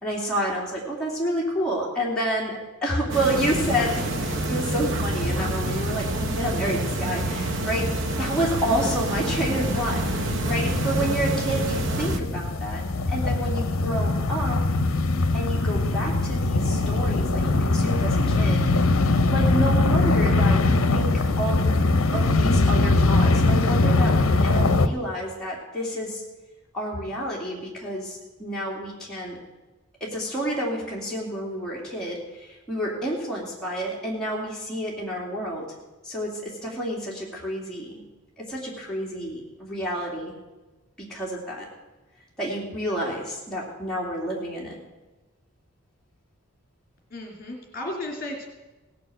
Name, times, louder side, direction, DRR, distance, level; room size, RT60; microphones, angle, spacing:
voice 1, 0.0-7.9 8.2-14.6 15.3-18.8 19.1-21.7 22.1-26.2 26.7-29.4 30.0-35.7 36.0-38.0 38.4-40.3 41.0-41.7 42.4-44.8, equal, 5° left, -5 dB, 2.7 m, -29 dB
sound 1, 3.1-12.2, right 1 dB, 55° right, 1.0 m, -27 dB
sound 2, 7.9-8.0 8.3-24.9, left 2 dB, 65° left, 0.8 m, -22 dB
voice 2, 47.1-48.5, left 1 dB, 40° left, 0 dB, 2.9 m, -34 dB
17.5 x 6.8 x 7.8 m, 1.1 s
head